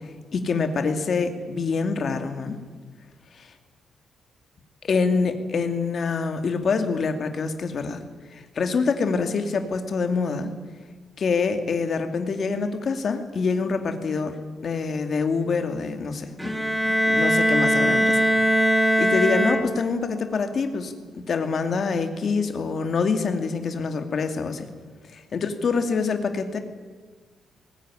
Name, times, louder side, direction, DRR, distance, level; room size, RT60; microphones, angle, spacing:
voice 1, 0.3-2.6 3.4-3.5 4.8-8.0 8.3-10.5 11.2-14.4 14.6-16.5 17.1-18.2 18.6-24.6 25.1-26.6, left 4 dB, 40° left, 7 dB, 2.4 m, -25 dB
Bowed string instrument, 16.4-20.1, equal, 5° right, 2.1 m, -21 dB
21.0 x 19.0 x 9.9 m, 1.4 s
cardioid pair, 175°, 0 cm